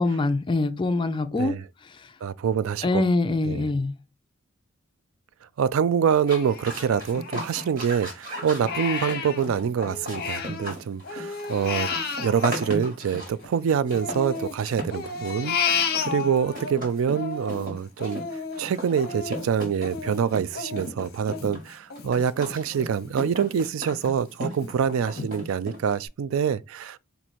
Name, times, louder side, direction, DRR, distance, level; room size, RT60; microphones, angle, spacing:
voice 1, 0.0-1.6 1.9-2.1 2.8-4.0, left 2 dB, 20° left, 0.3 m, -24 dB
voice 2, 1.3-1.6 2.2-3.0 3.5-3.7 5.6-11.9 12.2-27.0, right 7 dB, 70° right, 0.3 m, -26 dB
sound 1, 6.2-26.1, equal, 40° right, 1.7 m, -37 dB
Crying sobbing, 6.3-7.9 8.3-10.7 11.0-13.5 13.9-16.7 17.1-22.6 23.0-23.1 23.5-24.1 24.6-24.7 25.2-25.3, left 5 dB, 45° left, 0.7 m, -32 dB
4.4 x 2.7 x 4.1 m
head